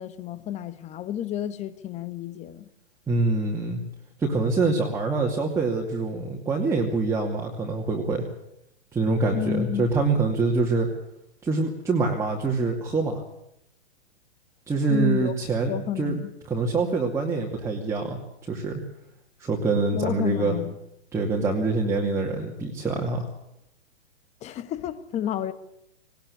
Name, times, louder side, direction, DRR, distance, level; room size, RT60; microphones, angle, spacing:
voice 1, 0.0-2.7 9.3-9.9 14.9-15.3 15.7-16.3 19.9-20.7 24.4-25.5, left 10 dB, 20° left, 1.3 m, -30 dB
voice 2, 3.1-3.8 4.2-8.3 8.9-10.9 11.4-13.2 14.7-16.1 16.5-18.8 19.4-20.6 21.1-23.3, right 3 dB, 10° right, 2.5 m, -25 dB
19.5 x 19.0 x 8.6 m
hypercardioid pair, 140°, 33 cm